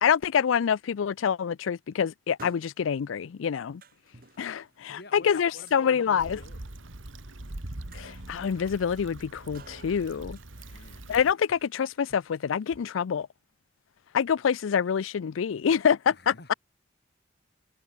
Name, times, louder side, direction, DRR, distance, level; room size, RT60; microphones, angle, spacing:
voice 1, 0.0-3.8 4.4-6.4 7.9-10.4 11.1-13.3 14.1-16.5, left 7 dB, 90° left, 0.4 m, -26 dB
sound 1, 2.4-12.9, right 3 dB, 50° right, 2.9 m, -56 dB
voice 2, 4.9-6.6 10.7-11.2 16.1-16.6, left 2 dB, 55° left, 6.7 m, -49 dB
Stream / Traffic noise roadway noise / Trickle dribble, 6.2-11.3, right 1 dB, 85° right, 2.1 m, -42 dB
head